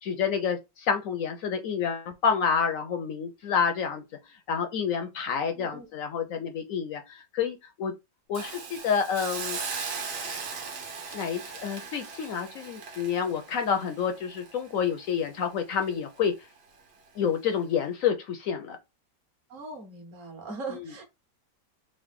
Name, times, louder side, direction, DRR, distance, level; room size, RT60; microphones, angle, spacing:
voice 1, 0.0-4.0 4.5-7.9 8.3-9.6 11.1-16.3 17.2-18.8 20.8-20.9, left 7 dB, 70° left, 0.8 m, -28 dB
voice 2, 5.6-5.9 19.5-21.0, right 3 dB, 50° right, 1.4 m, -40 dB
Hiss, 8.3-15.4 15.8-15.9, right 5 dB, 70° right, 1.5 m, -38 dB
3.8 x 2.6 x 3.5 m
omnidirectional pair, 1.9 m